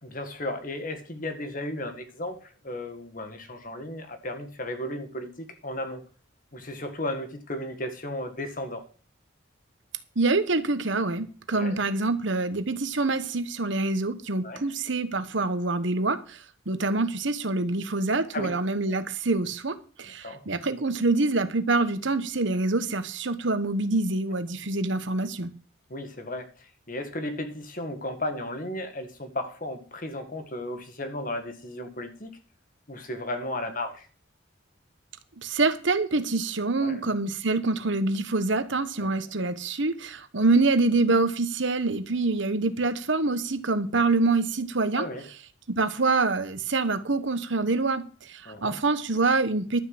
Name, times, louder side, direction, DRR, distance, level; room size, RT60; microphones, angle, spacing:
voice 1, 0.0-6.0 6.5-8.8 11.5-11.8 14.4-14.6 18.3-18.6 20.0-20.5 25.9-32.3 32.9-34.1 36.8-37.0 39.0-39.1 44.9-45.3 48.5-48.8, left 1 dB, 40° left, 1.7 m, -35 dB
voice 2, 10.2-25.5 35.4-45.1 45.7-49.8, right 3 dB, 65° right, 1.1 m, -26 dB
12.0 x 5.9 x 7.7 m
head